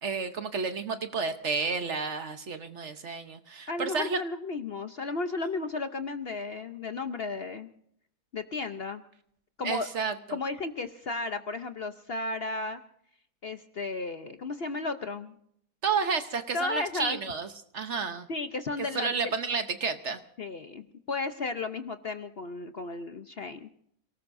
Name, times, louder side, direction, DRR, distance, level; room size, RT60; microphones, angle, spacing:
voice 1, 0.0-4.2 9.6-10.1 15.8-17.5 17.7-18.3 18.9-20.2, right 5 dB, 50° right, 8 dB, 1.1 m, -31 dB
voice 2, 3.7-7.7 8.3-9.0 9.6-9.9 10.3-12.8 13.4-15.4 16.5-17.2 18.3-19.3 20.4-23.7, left 3 dB, 50° left, 8 dB, 0.8 m, -34 dB
28.0 x 18.5 x 2.6 m, 0.68 s
omnidirectional pair, 1.7 m